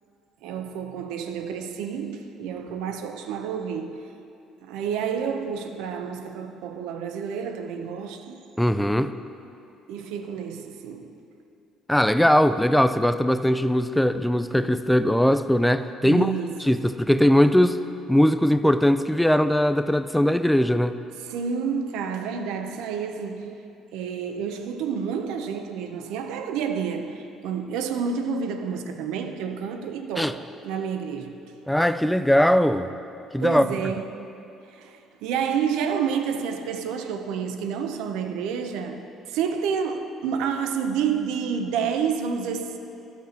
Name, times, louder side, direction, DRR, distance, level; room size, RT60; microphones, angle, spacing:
voice 1, 0.4-4.0 4.6-8.4 9.9-11.2 16.0-16.6 21.2-23.6 23.9-31.4 33.4-34.3 34.7-42.8, right 7 dB, 85° right, 0.6 m, -29 dB
voice 2, 8.6-9.1 11.9-16.3 16.6-17.8 18.1-20.9 30.2-30.3 31.7-32.9 33.3-33.7, equal, 5° left, 0.3 m, -20 dB
13.0 x 6.0 x 4.3 m
cardioid pair, 120°, 0 cm